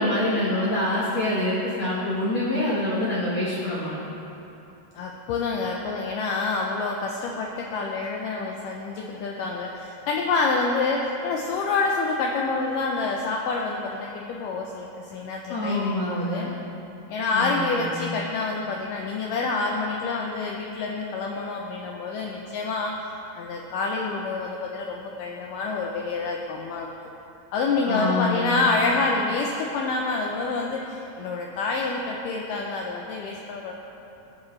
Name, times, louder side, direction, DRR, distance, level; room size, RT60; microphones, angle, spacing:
voice 1, 0.0-3.9 15.5-16.5 17.3-17.8 27.9-28.7, left 1 dB, 60° left, -7 dB, 1.8 m, -26 dB
voice 2, 5.0-16.5 17.1-22.9 23.4-26.9 27.5-33.7, left 3 dB, 85° left, 0 dB, 1.9 m, -27 dB
17.5 x 7.4 x 3.2 m, 2.9 s
omnidirectional pair, 4.5 m